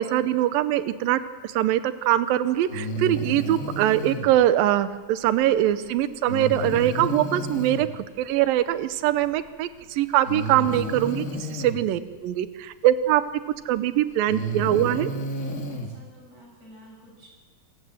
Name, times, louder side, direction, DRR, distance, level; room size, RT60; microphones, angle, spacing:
voice 1, 0.0-13.2 13.7-15.1, right 13 dB, 75° right, 12 dB, 2.5 m, -23 dB
Breathing, 2.7-4.3 6.3-7.9 9.2-9.3 10.2-11.8 13.3-13.4 14.1-15.9, equal, 30° left, 1.6 m, -31 dB
voice 2, 15.3-17.3, equal, 45° right, -2 dB, 8.3 m, -51 dB
28.0 x 15.5 x 7.9 m, 1.4 s
omnidirectional pair, 4.4 m